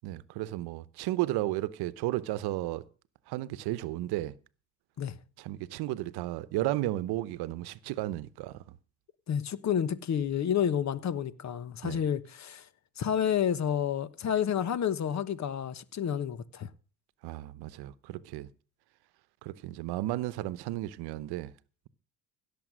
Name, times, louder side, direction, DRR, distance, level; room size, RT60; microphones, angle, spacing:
voice 1, 0.0-2.8 3.3-4.3 5.4-8.7 11.8-12.0 17.2-18.5 19.4-21.5, right 16 dB, 80° right, 0.9 m, -33 dB
voice 2, 9.3-12.6 13.0-16.7, left 8 dB, 45° left, 1.2 m, -30 dB
16.5 x 7.0 x 6.3 m
cardioid pair, 90°, 38 cm